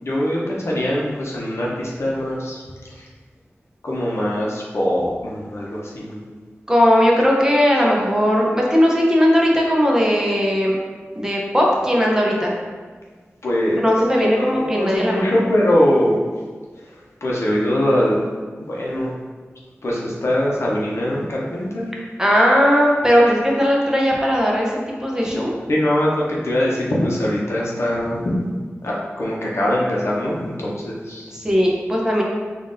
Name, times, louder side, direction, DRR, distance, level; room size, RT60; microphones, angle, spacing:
voice 1, 0.0-2.6 3.0-3.1 3.8-6.2 13.4-13.8 14.2-14.5 14.7-16.2 17.2-18.2 18.6-19.1 19.8-21.9 25.3-25.4 25.7-28.4 28.8-31.3, left 1 dB, 70° left, -5 dB, 0.8 m, -22 dB
voice 2, 6.7-10.7 11.2-12.6 13.8-15.3 22.2-25.5 31.3-32.2, equal, 15° right, -3 dB, 0.8 m, -17 dB
3.7 x 2.6 x 3.9 m, 1.5 s
wide cardioid pair, 55°, 5 cm